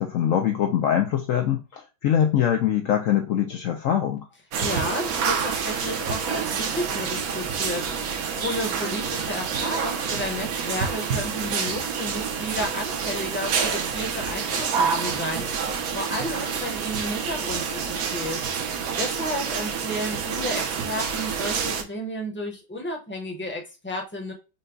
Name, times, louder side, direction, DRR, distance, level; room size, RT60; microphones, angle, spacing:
voice 1, 0.0-4.2, left 9 dB, 70° left, 5 dB, 0.7 m, -23 dB
sound 1, 4.5-21.8, right 6 dB, 65° right, 1.1 m, -28 dB
voice 2, 4.6-24.3, equal, 10° left, 1 dB, 0.7 m, -32 dB
5.3 x 2.2 x 3.8 m, 0.29 s
omnidirectional pair, 1.9 m